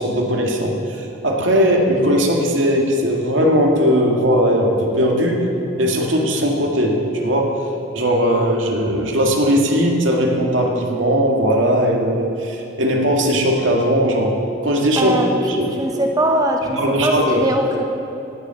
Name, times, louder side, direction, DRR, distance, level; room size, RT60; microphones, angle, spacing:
voice 1, 0.0-5.5 5.8-7.6 7.9-14.4 14.6-15.2 15.5-15.7 16.7-17.5, equal, 80° right, 0 dB, 2.1 m, -18 dB
voice 2, 15.0-15.3 15.8-17.8, right 1 dB, 20° right, 2 dB, 0.9 m, -20 dB
18.0 x 7.4 x 7.7 m, 3.0 s
head